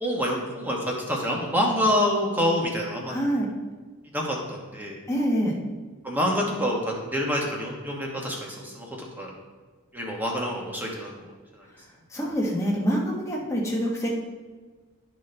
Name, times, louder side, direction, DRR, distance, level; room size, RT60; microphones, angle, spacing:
voice 1, 0.0-3.1 4.1-5.0 6.0-9.3 9.9-11.3 11.5-11.6, equal, 10° right, -2 dB, 1.2 m, -27 dB
voice 2, 3.1-3.5 5.1-5.6 12.1-14.1, equal, 15° left, -3 dB, 1.2 m, -26 dB
12.0 x 4.2 x 3.3 m, 1.4 s
head